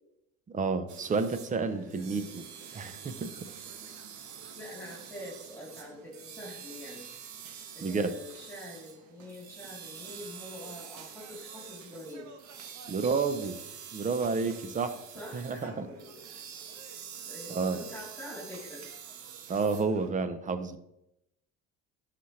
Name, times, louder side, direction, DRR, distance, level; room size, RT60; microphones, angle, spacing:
voice 1, 0.5-2.4 2.7-3.5 7.8-8.1 12.9-13.6 13.9-15.0 15.3-15.9 17.5-17.8 19.5-20.8, right 4 dB, 25° right, 11 dB, 0.8 m, -30 dB
sound 1, 0.9-20.1, right 8 dB, 70° right, 1.2 m, -46 dB
voice 2, 1.7-2.3 4.5-7.1 7.7-12.3 15.1-16.2 16.9-18.9, left 1 dB, 10° left, -4 dB, 3.3 m, -45 dB
12.0 x 5.9 x 3.3 m, 0.83 s
cardioid pair, 120°, 30 cm